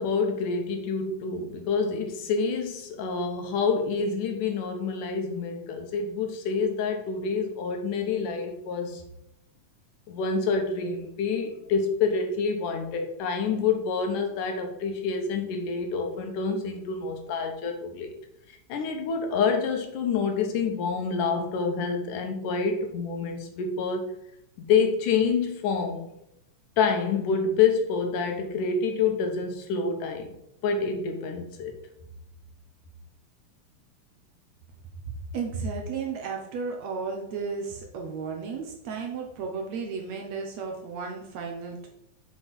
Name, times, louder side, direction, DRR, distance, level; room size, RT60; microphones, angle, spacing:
voice 1, 0.0-9.0 10.1-18.1 18.5-24.1 24.6-26.0 26.8-30.3 30.6-31.7, left 5 dB, 85° left, 4 dB, 2.8 m, -27 dB
voice 2, 35.3-41.9, right 5 dB, 65° right, 1 dB, 2.1 m, -33 dB
7.7 x 4.8 x 5.4 m, 0.81 s
omnidirectional pair, 3.6 m